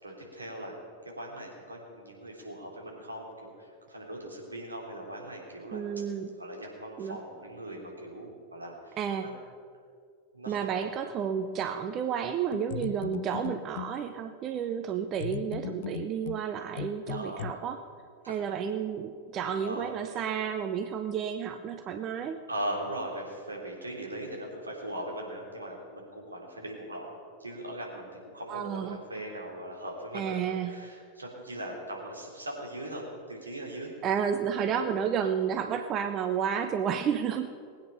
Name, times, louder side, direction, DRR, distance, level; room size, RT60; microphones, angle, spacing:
voice 1, 0.0-0.8 1.0-5.8 6.4-9.3 10.3-10.8 17.1-17.5 18.2-18.4 19.6-20.3 22.5-30.4 30.6-33.9 34.4-35.0, right 1 dB, 80° right, -1 dB, 3.1 m, -40 dB
voice 2, 5.7-6.3 7.0-7.2 9.0-9.3 10.5-17.8 18.3-22.4 28.5-29.0 30.1-30.7 34.0-37.5, right 8 dB, 30° right, 8 dB, 0.7 m, -31 dB
sound 1, 12.5-14.0 15.2-17.5, left 12 dB, 55° left, 0.5 m, -38 dB
20.0 x 9.0 x 5.7 m, 2.3 s
figure-of-eight pair, 90°, 0 cm